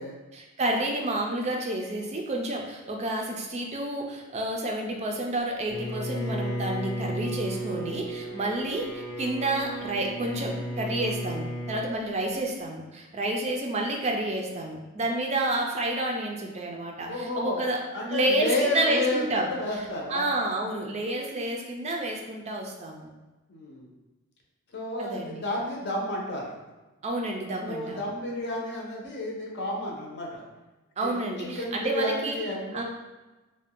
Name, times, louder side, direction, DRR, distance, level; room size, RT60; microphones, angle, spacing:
voice 1, 0.3-19.5 20.1-23.1 25.0-25.4 27.0-28.1 31.0-32.4 32.7-32.8, right 1 dB, 30° right, 1 dB, 0.4 m, -30 dB
Bowed string instrument, 5.7-12.0, equal, 15° left, 0.6 m, -34 dB
voice 2, 17.0-20.3 23.5-23.9 24.7-26.6 27.6-30.4 31.0-32.8, left 1 dB, 55° left, -2 dB, 0.6 m, -31 dB
2.5 x 2.1 x 3.5 m, 1.1 s
head